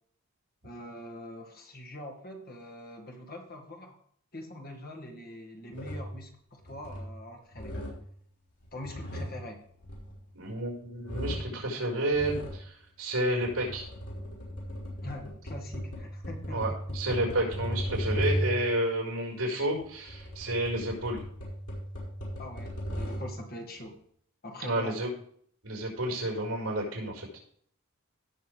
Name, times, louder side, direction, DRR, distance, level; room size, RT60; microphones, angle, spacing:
voice 1, 0.6-4.0 4.3-7.8 8.7-9.6 15.0-17.4 22.4-24.0 24.4-25.0, left 1 dB, 45° left, 2 dB, 1.9 m, -43 dB
sound 1, 5.7-6.2 6.6-7.2 7.5-8.1 8.6-10.7 11.0-11.6 12.1-12.6 13.3-18.7 19.7-23.4, equal, 85° left, 5.2 m, -36 dB
voice 2, 10.3-13.8 16.5-21.2 24.6-25.1 25.6-27.3, right 1 dB, 65° right, -2 dB, 5.0 m, -30 dB
17.5 x 6.5 x 3.4 m, 0.62 s
head